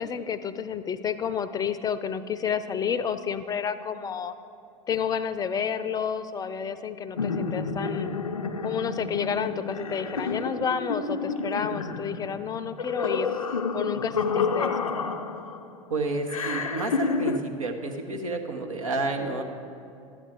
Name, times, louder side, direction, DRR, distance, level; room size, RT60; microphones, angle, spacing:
voice 1, 0.0-4.3 4.9-8.1 8.6-13.3 13.7-14.9, left 7 dB, 20° left, 13 dB, 0.5 m, -30 dB
sound 1, 7.2-15.7 16.3-17.4, left 4 dB, 85° left, 0.5 m, -29 dB
voice 2, 15.9-19.4, right 3 dB, 80° right, 3 dB, 1.1 m, -30 dB
12.0 x 9.1 x 4.5 m, 2.8 s
figure-of-eight pair, 80°, 17 cm